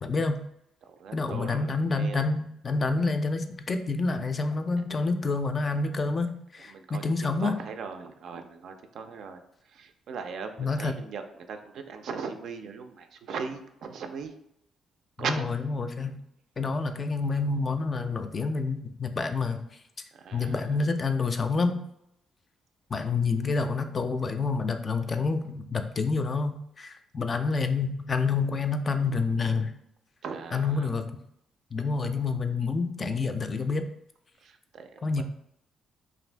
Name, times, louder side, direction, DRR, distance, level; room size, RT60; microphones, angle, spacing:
voice 1, 0.0-0.4 1.1-7.6 10.6-10.9 15.7-16.1 16.6-19.6 20.3-21.8 22.9-29.7 30.5-31.1 31.7-33.8 35.0-35.2, left 4 dB, 35° left, 7 dB, 0.3 m, -28 dB
voice 2, 0.8-2.3 6.6-14.3 15.2-15.5 20.1-20.9 30.2-31.1 34.4-35.2, right 5 dB, 70° right, 6 dB, 0.3 m, -39 dB
2.6 x 2.5 x 3.2 m, 0.79 s
cardioid pair, 90°, 0 cm